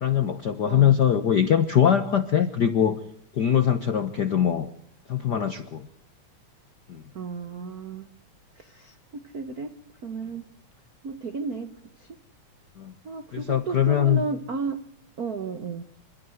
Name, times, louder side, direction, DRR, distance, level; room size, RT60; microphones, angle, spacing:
voice 1, 0.0-3.0 3.3-4.7 5.1-5.9 6.9-7.0 12.8-12.9 13.3-14.2, left 9 dB, 70° left, 9 dB, 1.0 m, -22 dB
voice 2, 0.7-1.0 7.1-8.1 8.6-9.7 10.0-10.5 11.0-12.1 13.0-14.8 15.2-15.8, right 4 dB, 70° right, 9 dB, 0.8 m, -33 dB
27.5 x 13.0 x 7.7 m, 0.69 s
omnidirectional pair, 3.4 m